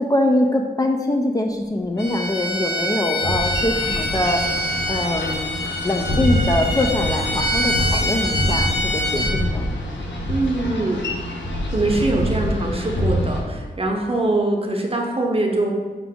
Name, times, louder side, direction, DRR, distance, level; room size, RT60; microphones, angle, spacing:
voice 1, 0.0-4.5 4.9-5.5 5.8-9.7, left 1 dB, 20° left, 2 dB, 0.4 m, -23 dB
Bowed string instrument, 2.0-9.4, equal, 70° left, 1.3 m, -25 dB
Boat Water vehicle, 3.2-13.4, equal, 85° left, 0.6 m, -25 dB
voice 2, 10.3-11.0 11.7-15.7, right 2 dB, 30° right, 1 dB, 0.7 m, -22 dB
5.7 x 2.5 x 3.5 m, 1.4 s
cardioid pair, 55°, 18 cm